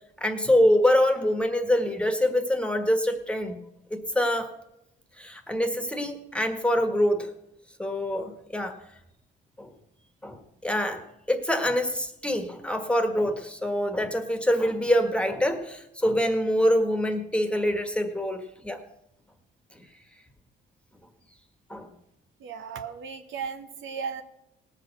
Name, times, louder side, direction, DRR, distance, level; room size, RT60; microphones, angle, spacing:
voice 1, 0.2-3.6 3.9-4.5 5.2-7.3 7.8-8.8 9.6-9.7 10.2-18.8 21.7-21.9, left 1 dB, 5° left, 7 dB, 1.6 m, -25 dB
voice 2, 22.4-24.2, right 6 dB, 75° right, 7 dB, 1.3 m, -35 dB
18.5 x 6.5 x 6.0 m, 0.84 s
cardioid pair, 90°, 20 cm